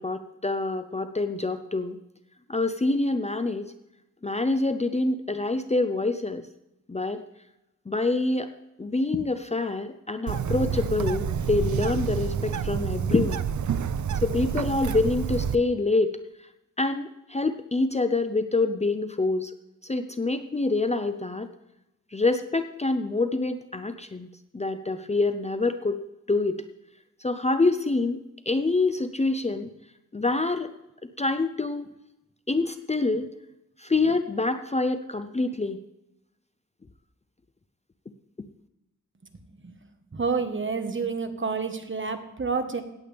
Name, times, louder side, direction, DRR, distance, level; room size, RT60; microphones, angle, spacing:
voice 1, 0.0-2.0 2.5-3.7 4.2-6.5 6.9-7.2 7.9-8.5 8.8-13.4 14.1-16.1 16.8-19.5 19.8-21.5 22.1-24.3 24.5-26.0 26.3-26.5 27.2-29.7 30.1-30.7 31.2-31.9 32.5-33.3 33.8-35.8, left 3 dB, 20° left, 9 dB, 0.6 m, -26 dB
Bird, 10.3-15.6, right 7 dB, 65° right, 0.6 m, -28 dB
voice 2, 40.1-42.8, right 4 dB, 40° right, 8 dB, 1.4 m, -29 dB
17.5 x 8.2 x 3.5 m, 0.92 s
wide cardioid pair, 80°, 32 cm